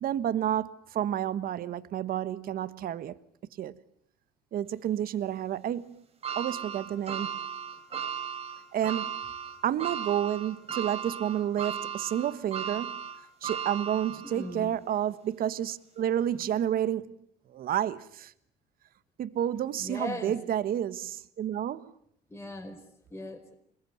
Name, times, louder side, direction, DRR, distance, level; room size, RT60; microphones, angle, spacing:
voice 1, 0.0-3.1 3.6-3.8 4.5-6.0 6.4-7.3 8.7-9.2 9.6-13.0 13.4-17.2 17.5-18.3 19.2-21.9, right 10 dB, 60° right, 1.3 m, -30 dB
sound 1, 6.2-14.6 15.1-15.2 16.3-16.4, right 8 dB, 35° right, 4.3 m, -36 dB
voice 2, 14.2-14.7 19.8-20.4 22.3-22.8 23.1-23.5, left 1 dB, 15° left, 5.1 m, -38 dB
26.5 x 21.5 x 9.4 m
cardioid pair, 110°, 17 cm